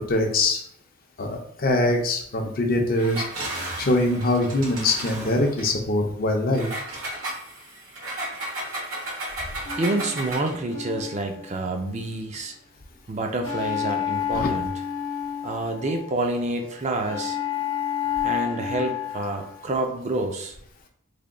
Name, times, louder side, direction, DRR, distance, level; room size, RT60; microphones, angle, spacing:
voice 1, 0.1-0.6 1.2-3.2 3.8-6.7 14.3-14.5, left 2 dB, 45° left, 3 dB, 0.6 m, -23 dB
Engine, 2.9-5.7 6.5-10.6, right 1 dB, 85° right, 1.3 m, -34 dB
sound 1, 9.6-12.1 13.4-16.3 17.0-19.6, left 9 dB, 90° left, 0.8 m, -30 dB
voice 2, 9.8-12.5 13.1-14.7 15.4-17.4 18.2-20.5, right 2 dB, 35° right, 3 dB, 0.4 m, -28 dB
3.4 x 2.2 x 3.6 m, 0.64 s
head